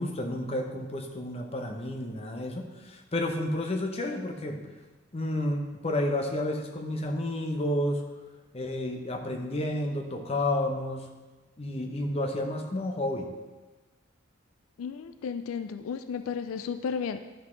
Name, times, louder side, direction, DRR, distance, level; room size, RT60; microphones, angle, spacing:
voice 1, 0.0-4.7 5.1-8.1 8.5-11.1 11.6-13.3, left 1 dB, 30° left, 3 dB, 0.7 m, -31 dB
voice 2, 14.8-17.2, left 6 dB, 80° left, 10 dB, 0.3 m, -33 dB
11.0 x 6.0 x 3.2 m, 1.2 s
head